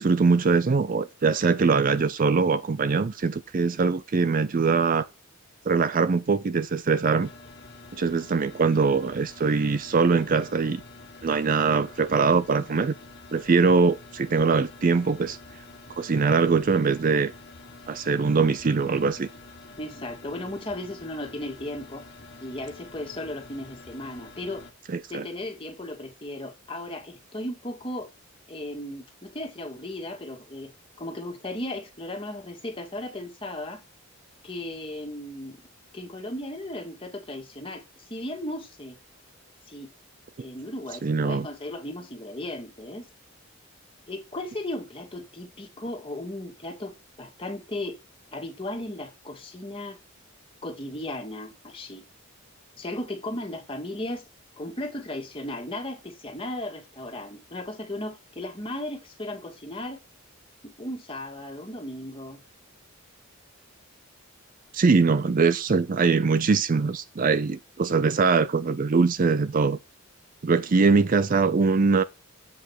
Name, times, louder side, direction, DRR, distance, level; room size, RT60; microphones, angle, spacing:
voice 1, 0.0-5.1 5.7-7.3 7.9-10.8 11.2-12.9 13.3-15.4 16.0-17.3 17.9-19.3 24.9-25.3 41.0-41.5 64.7-69.8 70.4-72.0, right 4 dB, 40° right, 0.4 m, -22 dB
sound 1, 7.2-24.7, left 3 dB, 50° left, 1.7 m, -47 dB
voice 2, 19.8-22.1 22.4-24.7 25.1-28.1 28.5-30.7 31.0-33.8 34.4-35.6 35.9-37.8 38.1-39.0 39.7-39.9 40.4-43.1 44.1-48.0 48.3-50.0 50.6-52.0 52.8-54.2 54.6-60.0 60.6-62.4, left 1 dB, 25° left, 2.1 m, -36 dB
8.0 x 5.2 x 5.9 m
head